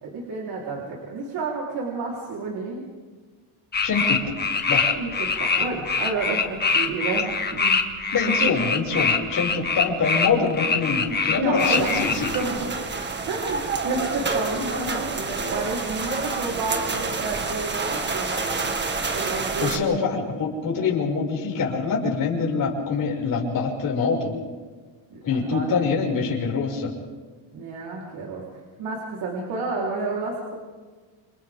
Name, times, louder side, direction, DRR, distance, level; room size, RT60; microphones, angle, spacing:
voice 1, 0.0-2.8 5.0-7.8 8.4-8.5 11.4-12.0 12.3-12.8 13.3-20.0 25.1-25.7 27.5-28.4 28.8-30.6, right 3 dB, 55° right, -4 dB, 4.0 m, -30 dB
sound 1, 3.7-12.4, left 5 dB, 20° left, 1.7 m, -23 dB
voice 2, 3.8-4.9 8.1-12.3 19.6-24.3 25.2-26.9, left 5 dB, 45° left, -3 dB, 6.2 m, -25 dB
sound 2, 11.6-19.8, right 4 dB, 25° right, 1.8 m, -28 dB
28.0 x 27.5 x 3.7 m, 1.4 s
cardioid pair, 140°, 45 cm